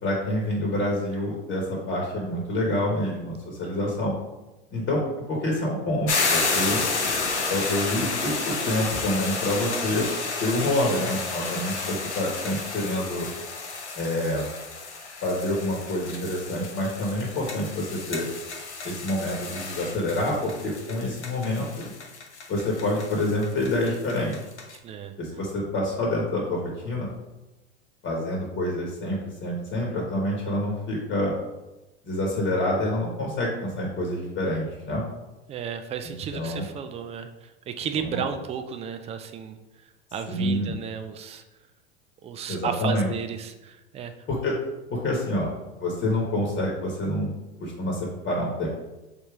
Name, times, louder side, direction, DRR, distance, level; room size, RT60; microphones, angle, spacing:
voice 1, 0.0-4.1 4.7-6.8 7.5-10.1 10.4-13.3 14.0-14.4 15.2-18.3 18.8-21.9 22.5-24.4 25.2-27.1 28.0-31.3 32.0-35.0 36.3-36.7 38.0-38.2 40.3-40.7 42.5-43.1 44.3-44.6 44.9-45.5 45.8-47.3 47.6-48.7, left 1 dB, 35° left, -2 dB, 1.2 m, -27 dB
sound 1, 6.1-24.8, left 4 dB, 90° left, 0.8 m, -31 dB
voice 2, 11.6-12.0 24.8-25.1 35.5-39.6 40.1-41.4 42.2-44.1, right 7 dB, 20° right, 8 dB, 0.3 m, -33 dB
3.5 x 2.9 x 4.7 m, 1.0 s
hypercardioid pair, 85°, 33 cm